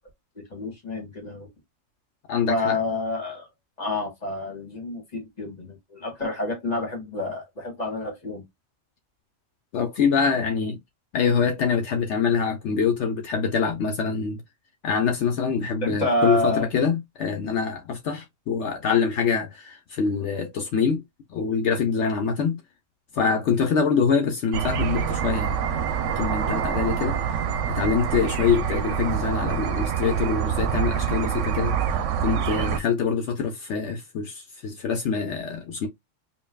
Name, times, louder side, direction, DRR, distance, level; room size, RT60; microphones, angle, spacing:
voice 1, 0.3-1.5 2.5-3.5 3.8-8.4 15.8-16.7 27.0-27.1, left 1 dB, 35° left, 1.7 m, -28 dB
voice 2, 2.3-2.8 9.7-10.8 11.1-14.4 14.8-21.0 21.3-22.6 23.1-25.6 26.2-27.2 27.7-31.7 32.2-35.9, left 6 dB, 70° left, 1.0 m, -25 dB
sound 1, 24.5-32.8, right 8 dB, 80° right, 0.9 m, -26 dB
5.3 x 2.6 x 2.2 m
omnidirectional pair, 1.3 m